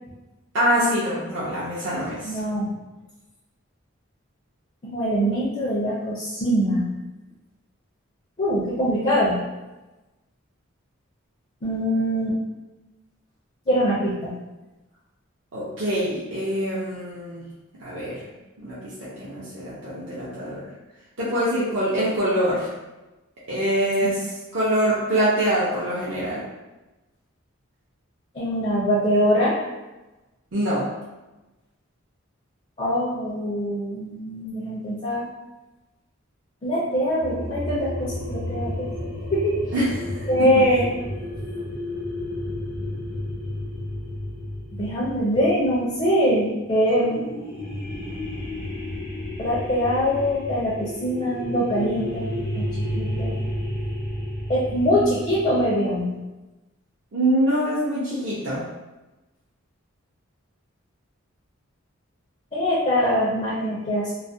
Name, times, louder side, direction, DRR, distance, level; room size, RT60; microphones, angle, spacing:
voice 1, 0.5-2.4 15.5-17.5 17.8-18.3 18.6-20.6 21.2-22.7 23.5-26.4 30.5-30.9 39.7-40.6 57.1-58.7, right 1 dB, 55° right, -9 dB, 0.5 m, -24 dB
voice 2, 2.2-2.7 4.8-6.9 8.4-9.4 11.6-12.4 13.7-14.3 24.0-24.1 28.3-29.5 32.8-35.3 36.6-38.9 39.3-39.6 40.3-40.9 44.7-47.2 49.4-52.2 52.5-52.7 52.9-53.4 54.5-56.1 62.5-64.1, equal, 30° left, -7 dB, 0.4 m, -23 dB
sound 1, 37.2-46.3 47.0-55.7, left 1 dB, 85° left, 0.8 m, -31 dB
2.3 x 2.0 x 2.6 m, 1.1 s
head